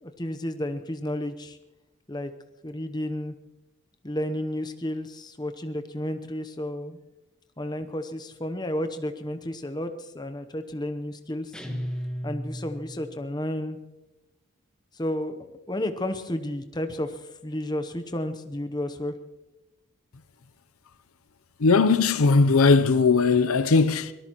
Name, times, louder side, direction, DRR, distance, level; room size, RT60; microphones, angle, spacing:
voice 1, 0.0-1.6 2.1-2.3 2.6-3.4 4.0-7.0 7.6-11.5 12.2-13.8 14.9-19.1, left 1 dB, 20° left, 0.8 m, -32 dB
sound 1, 11.5-13.2, equal, 5° left, 1.3 m, -34 dB
voice 2, 21.6-24.1, left 4 dB, 80° left, 0.7 m, -19 dB
24.0 x 18.0 x 3.0 m
head